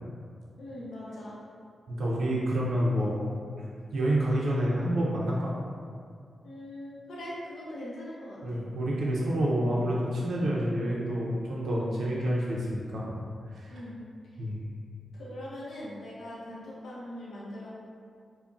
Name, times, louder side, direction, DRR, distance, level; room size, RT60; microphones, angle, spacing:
voice 1, 0.6-1.4 6.4-8.6 9.6-9.9 11.6-11.9 13.7-14.0 14.3-14.4 15.1-17.7, left 1 dB, 85° left, -7 dB, 0.5 m, -41 dB
voice 2, 1.9-3.2 3.6-5.5 8.4-13.2 13.5-13.8 14.4-14.8, right 1 dB, 70° right, -5 dB, 0.4 m, -28 dB
2.3 x 2.0 x 3.7 m, 2.2 s
cardioid pair, 95°, 0 cm